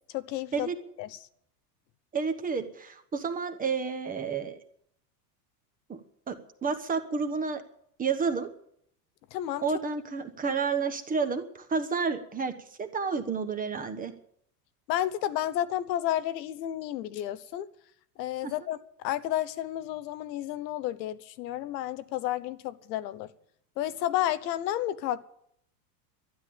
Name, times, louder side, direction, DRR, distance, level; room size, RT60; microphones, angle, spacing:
voice 1, 0.1-0.7 1.0-1.2 9.3-9.6 14.9-17.7 18.2-23.3 23.8-25.2, left 12 dB, 85° left, 1.1 m, -31 dB
voice 2, 2.1-4.6 5.9-6.0 6.3-7.6 8.0-8.5 9.6-12.5 12.8-14.1 18.4-18.5, right 5 dB, 15° right, 1.2 m, -30 dB
12.5 x 10.5 x 8.7 m
supercardioid pair, 140°, 49 cm